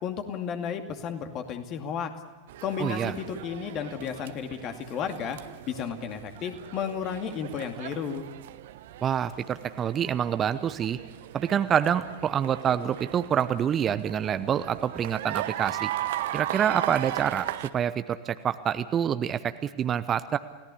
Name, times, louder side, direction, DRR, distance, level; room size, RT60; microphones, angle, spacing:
voice 1, 0.0-2.1 2.6-5.4 5.7-8.2, left 7 dB, 35° left, 6 dB, 2.4 m, -33 dB
sound 1, 2.5-17.7, right 13 dB, 55° right, 1.0 m, -38 dB
voice 2, 2.8-3.1 9.0-11.0 11.3-15.9 16.3-17.5 17.7-20.4, right 9 dB, 25° right, 12 dB, 0.9 m, -27 dB
30.0 x 18.0 x 8.6 m, 1.3 s
figure-of-eight pair, 90°, 0 cm